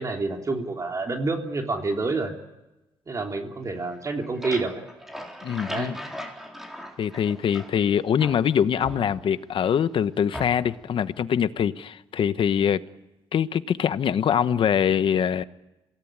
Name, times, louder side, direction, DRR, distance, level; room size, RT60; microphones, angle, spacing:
voice 1, 0.0-2.3 3.1-4.8 5.7-6.0, right 3 dB, 30° right, 3.3 m, -28 dB
sound 1, 3.9-7.9 8.2-9.5 10.3-10.9, equal, 5° right, 4.0 m, -39 dB
voice 2, 5.4-6.0 7.0-12.8 13.3-15.4, left 8 dB, 60° left, 1.0 m, -23 dB
27.0 x 17.5 x 8.8 m
cardioid pair, 120°, 10 cm